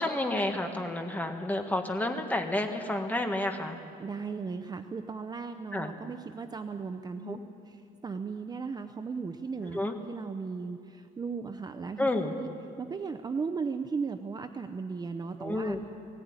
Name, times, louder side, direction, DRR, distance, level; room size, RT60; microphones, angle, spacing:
voice 1, 0.0-3.8 5.7-5.9 7.2-7.4 9.7-9.9 12.0-12.3 15.4-15.8, left 1 dB, 10° left, 4 dB, 1.7 m, -30 dB
voice 2, 4.0-7.4 7.7-12.1 12.4-12.5 12.8-15.8, right 5 dB, 25° right, 8 dB, 0.6 m, -36 dB
19.0 x 16.5 x 9.6 m, 2.5 s
cardioid pair, 140°, 16 cm